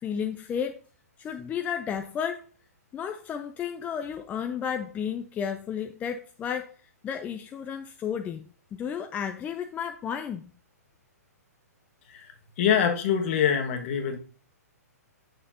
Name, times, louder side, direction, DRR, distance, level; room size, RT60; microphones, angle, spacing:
voice 1, 0.0-0.8 1.2-2.5 2.9-8.5 8.7-10.5, left 8 dB, 15° left, 7 dB, 0.5 m, -32 dB
voice 2, 12.6-14.2, left 8 dB, 45° left, 5 dB, 1.5 m, -24 dB
8.4 x 6.6 x 2.7 m, 0.39 s
figure-of-eight pair, 120°, 9 cm